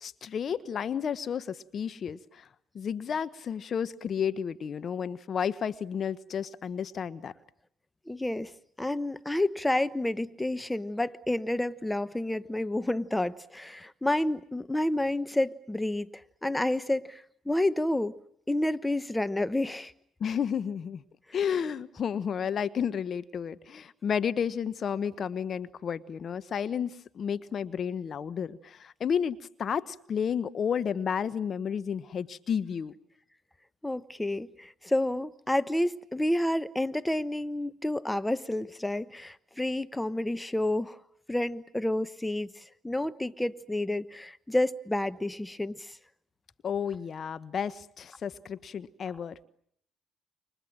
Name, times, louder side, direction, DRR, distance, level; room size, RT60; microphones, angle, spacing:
voice 1, 0.0-2.5 2.7-7.3 20.2-21.0 21.3-32.9 46.6-49.4, left 7 dB, 50° left, 1.1 m, -32 dB
voice 2, 8.1-8.5 8.8-18.2 18.5-19.9 33.8-41.0 41.3-46.0, left 1 dB, 10° left, 1.0 m, -30 dB
29.5 x 25.5 x 7.6 m
hypercardioid pair, 60°, 0 cm